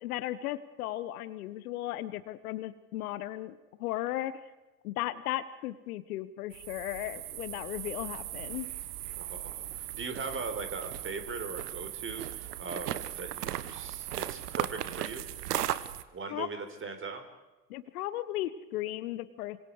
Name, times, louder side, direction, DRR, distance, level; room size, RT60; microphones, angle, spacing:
voice 1, 0.0-4.3 4.8-8.7 16.3-16.5 17.7-19.6, left 14 dB, 65° left, 15 dB, 1.4 m, -36 dB
sound 1, 6.5-16.0, right 12 dB, 75° right, 1.3 m, -37 dB
voice 2, 9.2-15.3 16.1-17.2, right 4 dB, 25° right, 7 dB, 4.4 m, -40 dB
27.0 x 26.0 x 4.9 m, 1.1 s
hypercardioid pair, 80°, 47 cm